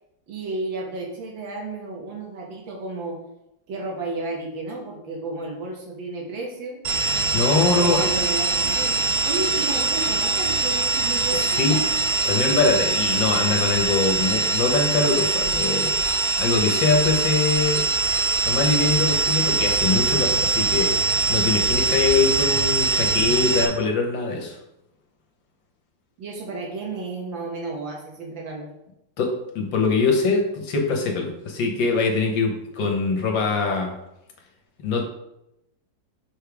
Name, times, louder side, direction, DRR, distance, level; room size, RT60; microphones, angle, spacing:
voice 1, 0.3-3.2 3.7-6.8 7.7-9.0 9.2-12.0 26.2-28.7, right 2 dB, 75° right, 0 dB, 2.0 m, -32 dB
sound 1, 6.8-23.7, right 3 dB, 50° right, 0.8 m, -23 dB
voice 2, 7.3-8.0 11.3-11.8 12.2-15.9 16.4-17.9 18.5-21.0 21.3-24.6 29.2-34.0 34.8-35.0, left 4 dB, 75° left, 2 dB, 1.8 m, -23 dB
6.7 x 5.4 x 3.5 m, 0.86 s
omnidirectional pair, 2.1 m